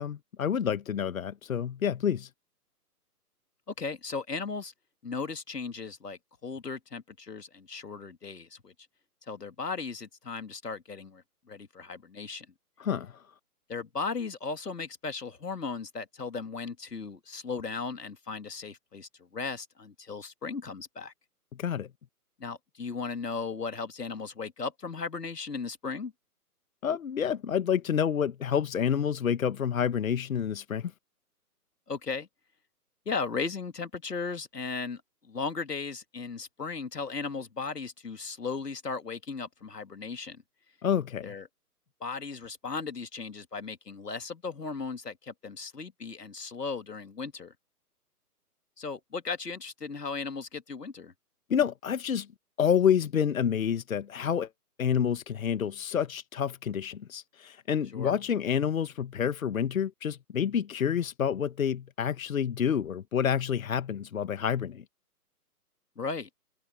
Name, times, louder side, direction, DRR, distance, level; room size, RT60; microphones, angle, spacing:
voice 1, 0.0-2.3 12.8-13.2 21.6-21.9 26.8-30.9 40.8-41.3 51.5-52.3 52.6-54.5 54.8-64.8, left 8 dB, 60° left, 1.2 m, -28 dB
voice 2, 3.8-4.7 5.0-8.7 9.3-12.5 13.7-21.1 22.4-26.1 31.9-32.3 33.1-40.4 41.2-41.5 42.0-47.5 48.8-51.1 57.9-58.1 66.0-66.3, left 4 dB, 80° left, 2.4 m, -36 dB
figure-of-eight pair, 135°, 47 cm